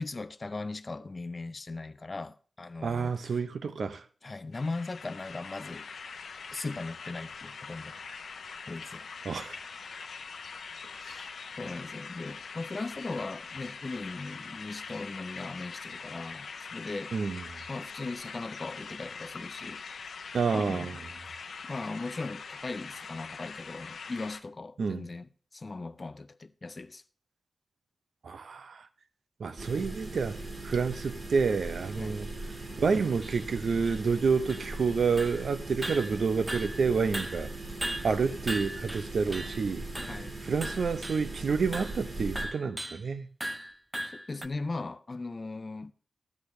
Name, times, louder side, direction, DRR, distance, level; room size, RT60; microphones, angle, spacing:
voice 1, 0.0-3.4 4.2-5.9 6.5-8.0 8.7-9.1 11.6-17.4 17.7-19.8 20.5-21.0 21.6-27.0 32.0-32.2 40.1-40.3 44.1-45.9, left 3 dB, 35° left, 0.5 m, -38 dB
voice 2, 2.8-4.0 9.2-9.6 11.0-11.2 17.1-17.4 20.3-21.0 24.8-25.0 28.2-28.9 29.4-30.4 30.6-32.3 32.8-37.5 38.0-39.9 40.4-43.3, right 5 dB, 75° right, 0.7 m, -29 dB
sound 1, 4.5-24.4, left 5 dB, 90° left, 0.7 m, -43 dB
sound 2, 29.6-42.4, right 2 dB, 40° right, 1.6 m, -40 dB
sound 3, 30.9-31.0 31.5-31.6 32.2-32.3 32.5-32.6 33.2-33.4 33.8-34.9 35.2-35.5 35.8-36.9 37.1-39.6 39.9-40.3 40.6-41.3 41.7-42.0 42.4-43.0 43.4-44.5, right 1 dB, 15° right, 0.5 m, -38 dB
13.0 x 8.5 x 3.3 m
wide cardioid pair, 115°, 0 cm